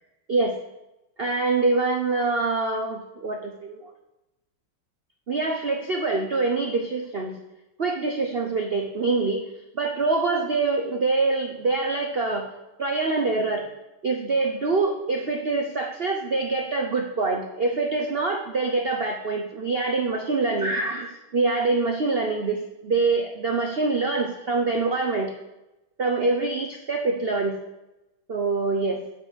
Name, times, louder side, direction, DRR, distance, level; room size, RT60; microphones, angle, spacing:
voice 1, 1.2-3.9 5.3-7.4 7.8-9.4 9.7-12.5 12.8-13.6 14.0-25.3 26.0-27.6 28.3-29.0, right 3 dB, 80° right, 3 dB, 0.5 m, -25 dB
7.6 x 6.7 x 8.0 m, 0.96 s
omnidirectional pair, 2.4 m